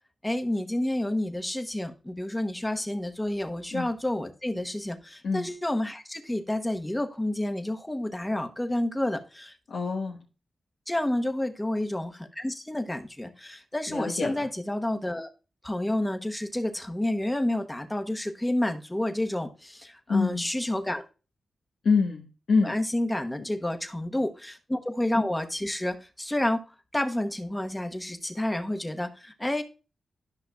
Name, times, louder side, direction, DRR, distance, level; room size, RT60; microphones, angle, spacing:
voice 1, 0.2-9.5 10.9-15.3 15.6-21.0 22.6-29.6, left 1 dB, 15° left, 1.0 m, -30 dB
voice 2, 9.7-10.2 13.9-14.5 20.1-20.5 21.8-22.7, left 4 dB, 80° left, 1.1 m, -26 dB
13.0 x 5.6 x 2.3 m
cardioid pair, 60°, 0 cm